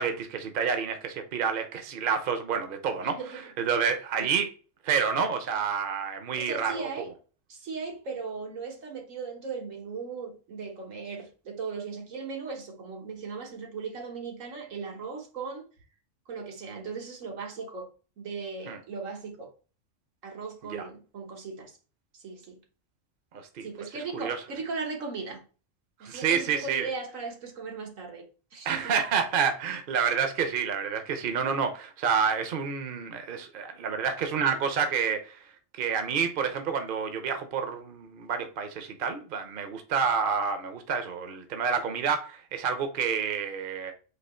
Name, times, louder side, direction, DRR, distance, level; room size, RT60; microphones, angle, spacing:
voice 1, 0.0-3.2 3.6-4.5 4.8-6.9 18.7-18.8 20.7-20.9 23.6-23.7 24.1-24.4 26.0-26.9 28.6-35.4 35.8-43.9, right 6 dB, 50° right, 0.8 m, -28 dB
voice 2, 3.0-3.4 4.1-4.3 6.4-7.1 7.5-15.7 16.3-17.9 18.2-19.5 20.2-21.7 22.1-22.6 23.6-25.4 26.0-28.9, right 4 dB, 85° right, 1.5 m, -38 dB
4.3 x 2.9 x 4.2 m
omnidirectional pair, 1.3 m